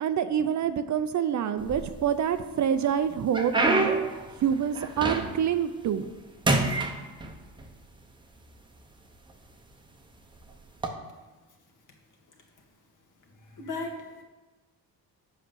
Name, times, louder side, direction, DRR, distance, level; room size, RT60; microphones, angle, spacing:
voice 1, 0.0-3.9 4.4-6.1, right 8 dB, 50° right, 10 dB, 0.5 m, -26 dB
sound 1, 1.6-2.3 2.8-5.6 5.9-6.2 6.4-7.7 8.5-8.6 9.3-9.5 10.7-10.9, right 2 dB, 10° right, 0.8 m, -27 dB
voice 2, 13.4-14.2, left 3 dB, 55° left, 2 dB, 1.7 m, -36 dB
7.8 x 5.9 x 6.8 m, 1.2 s
cardioid pair, 150°, 38 cm